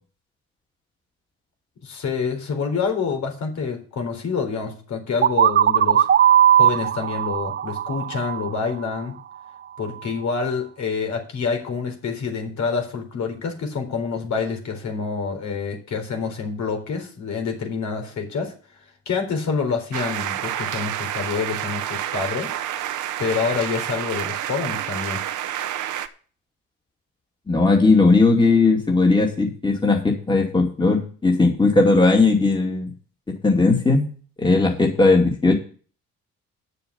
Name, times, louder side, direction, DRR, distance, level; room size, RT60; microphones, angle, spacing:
voice 1, 1.8-6.1 6.5-9.1 9.8-18.5 19.1-22.5 23.2-25.2, left 5 dB, 65° left, 4 dB, 4.0 m, -27 dB
sound 1, 5.2-9.0, right 10 dB, 40° right, 0.5 m, -18 dB
sound 2, 19.9-26.1, right 11 dB, 80° right, 1.0 m, -29 dB
voice 2, 27.5-32.9 33.3-34.1 34.4-35.5, left 3 dB, 15° left, 1 dB, 2.5 m, -18 dB
9.4 x 6.9 x 7.0 m, 0.40 s
cardioid pair, 90°, 30 cm